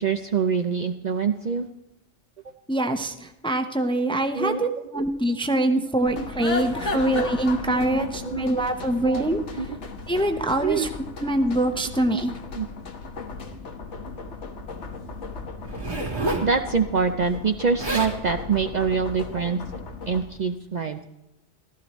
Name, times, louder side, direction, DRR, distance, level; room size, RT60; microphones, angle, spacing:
voice 1, 0.0-1.7 4.0-4.7 6.5-6.6 7.0-7.2 7.7-8.4 9.0-9.2 9.6-9.7 10.6-10.9 12.1-12.2 12.5-12.7 16.4-19.6 20.1-21.0, right 5 dB, 50° right, 7 dB, 0.6 m, -25 dB
voice 2, 2.7-9.4 10.1-10.9 11.2-12.3, right 1 dB, 5° left, 6 dB, 0.6 m, -24 dB
sound 1, 6.0-20.2, left 3 dB, 90° left, 1.5 m, -36 dB
Zipper (clothing), 15.6-16.5 17.5-17.6 17.8-18.2 18.9-19.1, right 2 dB, 70° right, 2.4 m, -29 dB
15.0 x 13.5 x 3.1 m, 0.92 s
omnidirectional pair, 1.2 m